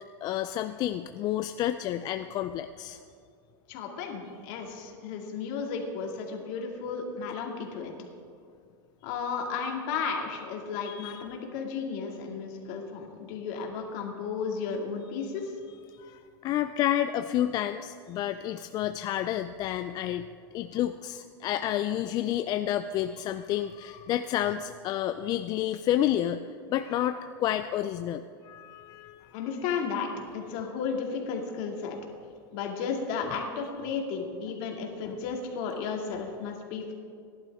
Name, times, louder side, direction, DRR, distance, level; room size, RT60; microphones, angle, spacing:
voice 1, 0.2-3.0 10.9-11.2 16.0-20.3 20.5-26.4 26.7-29.3 35.0-35.2, left 12 dB, 35° left, 9 dB, 0.4 m, -30 dB
voice 2, 3.7-7.9 9.0-15.5 29.3-30.1 30.3-32.0 32.5-36.9, left 5 dB, 55° left, 2 dB, 2.2 m, -34 dB
18.0 x 11.5 x 3.6 m, 2.3 s
supercardioid pair, 140°, 13 cm